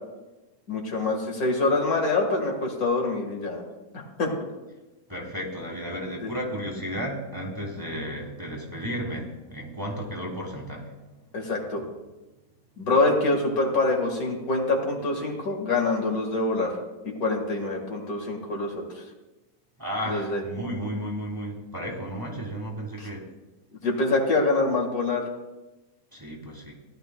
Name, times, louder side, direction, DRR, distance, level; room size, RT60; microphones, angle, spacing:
voice 1, 0.7-3.6 4.2-4.3 6.2-6.3 11.3-11.8 12.8-16.7 17.2-18.8 20.0-20.4 23.0-23.1 23.8-25.2, left 2 dB, 70° left, 1 dB, 2.3 m, -25 dB
voice 2, 5.1-10.9 19.8-23.2 26.1-26.7, equal, 15° right, -1 dB, 1.6 m, -33 dB
17.5 x 11.0 x 2.3 m, 1.1 s
omnidirectional pair, 1.6 m